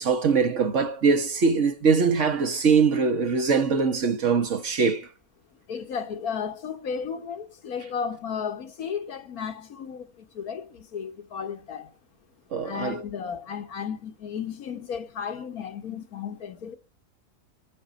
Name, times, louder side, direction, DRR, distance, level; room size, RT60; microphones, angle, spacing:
voice 1, 0.0-5.1 12.5-13.0, right 5 dB, 55° right, 1.6 m, -22 dB
voice 2, 5.7-11.9 12.6-16.7, left 7 dB, 80° left, 1.7 m, -34 dB
26.5 x 9.5 x 4.1 m
omnidirectional pair, 1.5 m